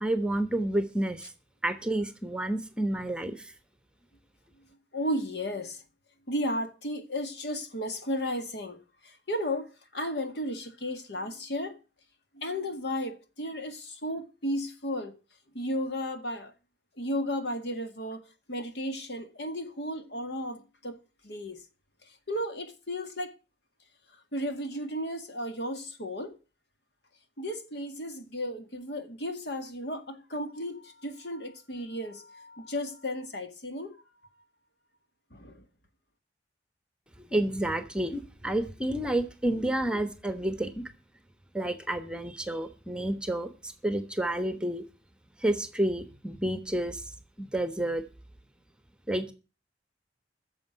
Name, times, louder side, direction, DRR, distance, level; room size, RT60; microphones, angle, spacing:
voice 1, 0.0-1.3 1.6-3.5 37.3-40.8 41.5-44.8 45.4-47.0 47.4-48.0 49.1-49.3, right 1 dB, 5° right, 1.1 m, -30 dB
voice 2, 4.9-5.8 6.3-11.8 12.3-15.1 15.5-16.5 17.0-21.0 21.2-21.6 22.1-23.3 24.3-26.4 27.4-34.0 35.3-35.6, equal, 70° left, 2.0 m, -34 dB
10.5 x 7.0 x 9.4 m
head